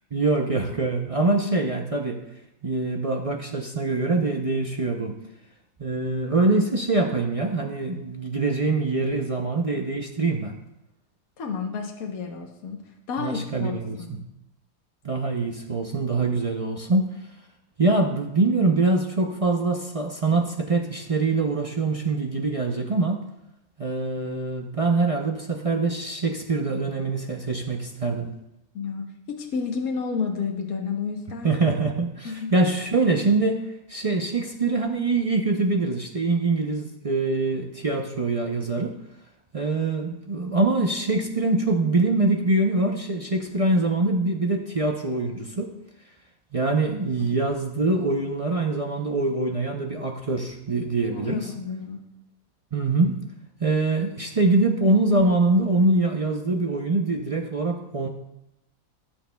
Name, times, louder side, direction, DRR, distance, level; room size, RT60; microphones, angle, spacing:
voice 1, 0.1-2.2 2.6-5.2 5.8-10.6 13.2-14.2 15.0-17.1 17.8-23.2 23.8-28.3 31.4-38.9 39.5-45.7 46.5-51.5 52.7-53.2 53.6-58.1, right 3 dB, 50° right, 2 dB, 0.4 m, -24 dB
voice 2, 11.4-12.8 13.1-14.2 28.7-31.5 32.2-32.5 47.2-47.4 51.0-52.0, left 5 dB, 70° left, 1 dB, 1.4 m, -31 dB
17.0 x 7.3 x 2.3 m, 0.88 s
omnidirectional pair, 1.6 m